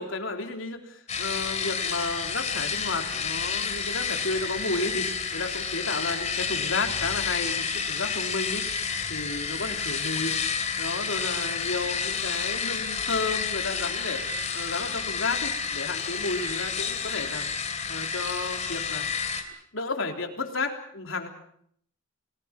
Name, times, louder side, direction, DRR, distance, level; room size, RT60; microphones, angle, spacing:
voice 1, 0.0-10.3 10.8-14.2 14.5-17.5 17.9-19.1 19.7-21.3, left 3 dB, 75° left, 3 dB, 3.6 m, -32 dB
sound 1, 1.1-19.4, left 6 dB, 35° left, 3.1 m, -30 dB
30.0 x 19.5 x 6.0 m, 0.67 s
head